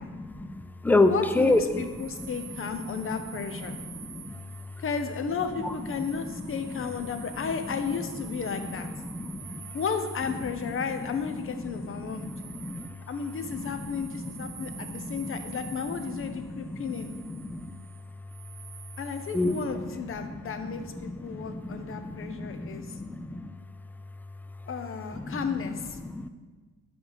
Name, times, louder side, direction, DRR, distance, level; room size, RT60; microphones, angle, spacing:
voice 1, 0.0-1.8 2.2-2.3 3.7-4.4 6.7-6.8 7.1-7.2 8.3-8.6 9.0-9.6 10.6-10.7 11.7-12.9 13.6-15.4 15.9-16.2 16.5-17.7 19.3-19.8 20.2-20.7 21.0-23.5 25.1-25.4 26.0-26.3, left 2 dB, 5° left, 10 dB, 0.4 m, -30 dB
voice 2, 1.1-3.8 4.8-8.9 9.7-12.3 13.1-17.1 19.0-23.0 24.7-26.0, left 6 dB, 45° left, 8 dB, 0.8 m, -33 dB
sound 1, 1.2-19.7, right 9 dB, 75° right, 0.9 m, -48 dB
5.8 x 5.2 x 5.6 m, 1.4 s
cardioid pair, 90°, 30 cm